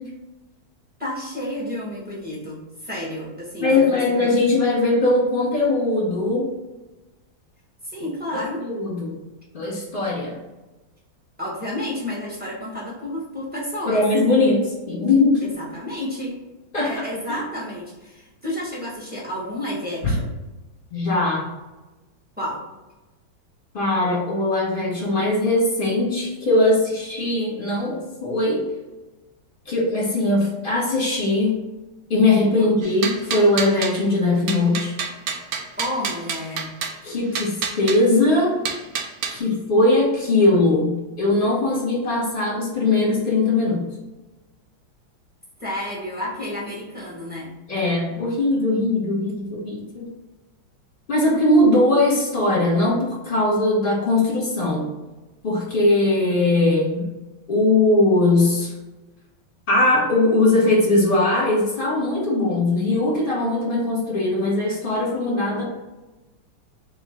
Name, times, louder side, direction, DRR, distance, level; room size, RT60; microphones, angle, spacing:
voice 1, 1.0-4.3 7.8-8.7 11.4-14.1 15.4-16.3 16.8-20.3 22.4-22.6 32.6-32.7 35.8-36.7 39.3-39.5 45.6-47.5, left 1 dB, 5° right, -7 dB, 1.1 m, -31 dB
voice 2, 3.6-6.5 8.6-9.2 9.5-10.4 13.9-15.4 16.7-17.4 20.0-20.1 20.9-21.4 23.7-28.6 29.7-31.6 32.1-34.9 37.0-38.5 39.3-43.8 47.7-50.1 51.1-54.9 55.4-57.0 57.5-58.7 59.7-65.6, left 2 dB, 30° left, -5 dB, 1.2 m, -20 dB
sound 1, 32.8-34.0 34.5-37.0 37.3-38.0 38.6-39.4, right 6 dB, 80° right, 1.4 m, -28 dB
3.7 x 3.1 x 3.6 m, 1.1 s
omnidirectional pair, 2.2 m